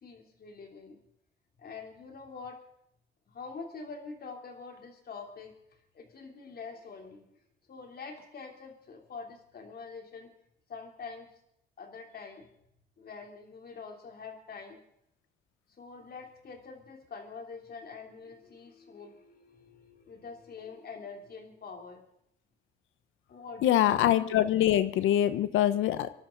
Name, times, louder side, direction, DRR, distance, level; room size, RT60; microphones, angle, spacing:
voice 1, 0.0-1.0 1.6-2.6 3.3-5.6 5.9-7.3 7.7-10.3 10.7-11.3 11.8-12.5 13.0-14.8 15.8-22.0 23.3-23.8, left 4 dB, 50° left, 3 dB, 3.4 m, -45 dB
voice 2, 23.6-26.1, left 12 dB, 85° left, 13 dB, 1.0 m, -24 dB
25.0 x 11.5 x 4.0 m, 0.73 s
cardioid pair, 90°, 20 cm